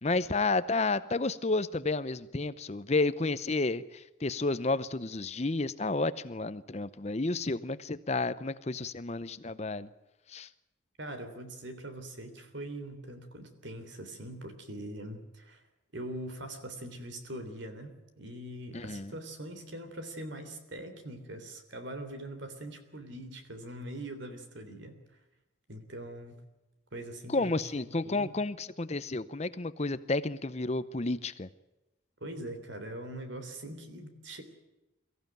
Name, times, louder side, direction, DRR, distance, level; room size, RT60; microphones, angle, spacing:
voice 1, 0.0-9.9 10.3-10.5 18.7-19.1 27.3-31.5, left 3 dB, 35° left, 14 dB, 0.7 m, -31 dB
voice 2, 11.0-15.6 15.9-25.0 25.7-26.4 26.9-28.3 32.2-34.4, right 1 dB, 65° right, 8 dB, 3.4 m, -42 dB
23.5 x 15.0 x 9.2 m, 1.0 s
head